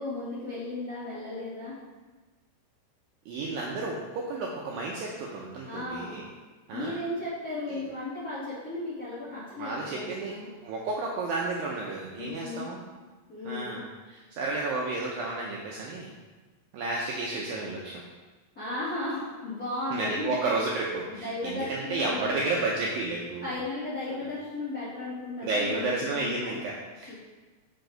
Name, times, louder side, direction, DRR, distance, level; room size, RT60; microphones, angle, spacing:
voice 1, 0.0-1.7 5.7-6.2 6.7-10.5 12.2-12.7 13.3-13.8 18.5-20.3 20.8-22.4 23.4-26.6 27.1-27.2, left 2 dB, 35° left, -11 dB, 1.5 m, -35 dB
voice 2, 3.3-6.2 6.7-7.0 7.7-7.8 9.5-10.4 10.6-12.8 13.5-16.1 16.7-18.0 19.9-23.5 25.4-27.2, right 2 dB, 85° right, -2 dB, 2.1 m, -32 dB
6.8 x 6.7 x 3.9 m, 1.3 s
omnidirectional pair, 4.9 m